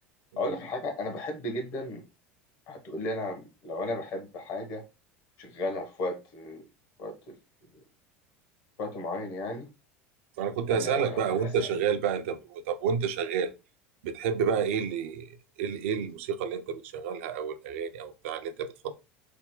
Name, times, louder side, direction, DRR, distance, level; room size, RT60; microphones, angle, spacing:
voice 1, 0.4-2.0 2.7-4.8 5.4-6.7 7.0-7.3 8.8-9.7 10.7-11.7, left 2 dB, 55° left, 1.1 m, -34 dB
voice 2, 10.4-13.5 14.0-18.9, right 7 dB, 70° right, 0.5 m, -30 dB
3.4 x 2.1 x 3.7 m
hypercardioid pair, 80°, 7 cm